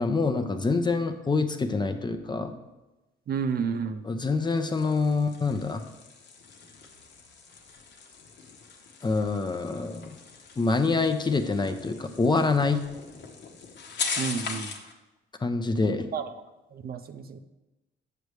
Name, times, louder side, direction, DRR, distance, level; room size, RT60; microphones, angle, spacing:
voice 1, 0.0-2.5 4.1-5.8 9.0-10.1 10.6-12.8 15.4-16.1, left 3 dB, 20° left, 7 dB, 0.6 m, -26 dB
voice 2, 3.3-4.0 14.2-14.7 16.1-16.3 16.7-17.4, right 6 dB, 50° right, 9 dB, 0.5 m, -31 dB
sound 1, 4.2-14.9, left 5 dB, 65° left, 1.0 m, -40 dB
7.8 x 6.8 x 3.3 m, 1.1 s
cardioid pair, 90°, 20 cm